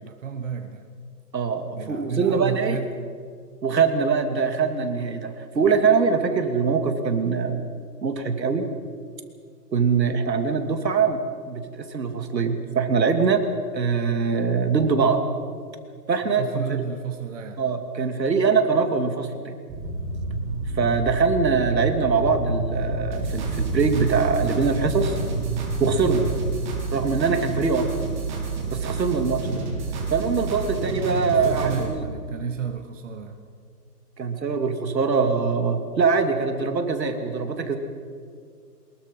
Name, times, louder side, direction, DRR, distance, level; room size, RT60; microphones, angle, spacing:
voice 1, 0.0-0.8 1.7-3.1 16.4-17.6 31.2-33.4, right 7 dB, 50° right, 6 dB, 1.5 m, -31 dB
voice 2, 1.3-2.8 3.6-7.7 8.0-8.7 9.7-11.2 11.5-13.5 13.7-15.2 16.1-16.8 17.6-19.6 20.7-25.2 25.8-26.2 26.9-27.9 28.7-29.6 30.1-32.1 34.2-37.8, right 5 dB, 80° right, 6 dB, 2.9 m, -23 dB
sound 1, 19.7-26.4, right 1 dB, 5° right, 1.9 m, -29 dB
sound 2, 23.1-31.8, right 4 dB, 30° right, 3.7 m, -30 dB
23.5 x 21.5 x 5.6 m, 2.1 s
hypercardioid pair, 170°, 50 cm